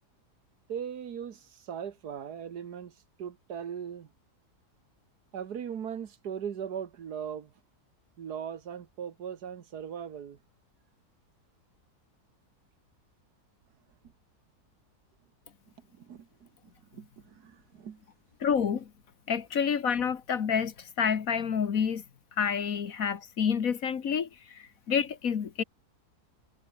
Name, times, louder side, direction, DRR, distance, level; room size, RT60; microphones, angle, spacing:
voice 1, 0.7-4.1 5.3-7.5 8.2-10.4 15.9-16.5 16.9-18.0, right 8 dB, 75° right, 1.8 m, -39 dB
voice 2, 18.4-18.9 19.3-22.0 22.4-25.6, left 7 dB, 60° left, 1.7 m, -28 dB
omnidirectional pair, 1.7 m